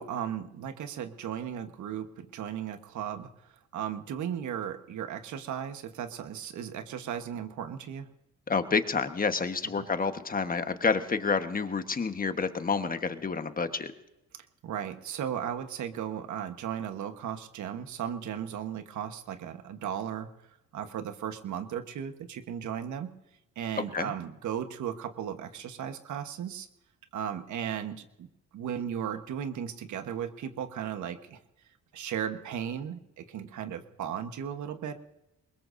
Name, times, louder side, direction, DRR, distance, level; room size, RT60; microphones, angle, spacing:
voice 1, 0.0-3.3 3.7-8.1 9.8-9.9 14.3-20.3 20.7-23.2 23.6-26.7 27.1-31.4 31.9-34.9, right 9 dB, 70° right, 9 dB, 1.3 m, -36 dB
voice 2, 8.5-13.9 23.8-24.1, left 5 dB, 30° left, 9 dB, 1.3 m, -29 dB
22.5 x 21.0 x 2.7 m, 0.92 s
cardioid pair, 90°, 30 cm